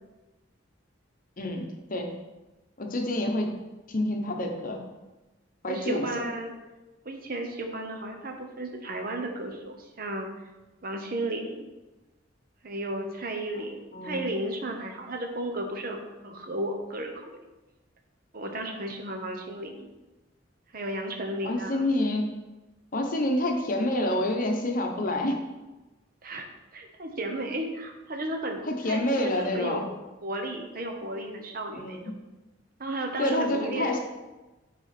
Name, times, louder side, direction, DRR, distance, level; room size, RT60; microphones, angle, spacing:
voice 1, 1.4-2.2 2.8-3.5 3.9-4.9 5.6-6.1 13.9-14.2 21.4-22.3 22.9-25.4 28.7-29.9 31.7-32.2 33.2-34.0, left 1 dB, 45° left, 3 dB, 0.9 m, -28 dB
voice 2, 5.7-6.5 7.0-10.3 10.8-11.7 12.6-17.4 18.3-19.9 20.7-21.8 26.2-26.5 26.7-29.8 30.2-32.1 32.8-33.9, right 1 dB, 50° right, 3 dB, 0.9 m, -34 dB
5.5 x 4.1 x 5.9 m, 1.1 s
head